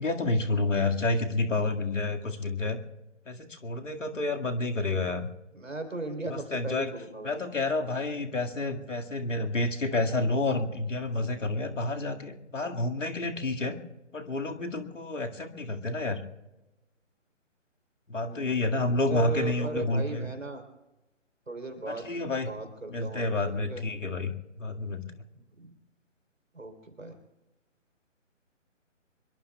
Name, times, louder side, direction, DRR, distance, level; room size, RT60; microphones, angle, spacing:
voice 1, 0.0-2.8 3.3-5.3 6.3-6.9 7.2-13.8 14.1-16.2 18.1-20.3 21.9-22.5 22.9-25.2, left 2 dB, 75° left, 3 dB, 2.1 m, -29 dB
voice 2, 5.5-7.5 18.2-20.6 21.5-23.8 25.6-25.7 26.5-27.2, right 3 dB, 80° right, 6 dB, 3.8 m, -37 dB
25.5 x 23.0 x 2.3 m, 1.0 s
figure-of-eight pair, 145°, 38 cm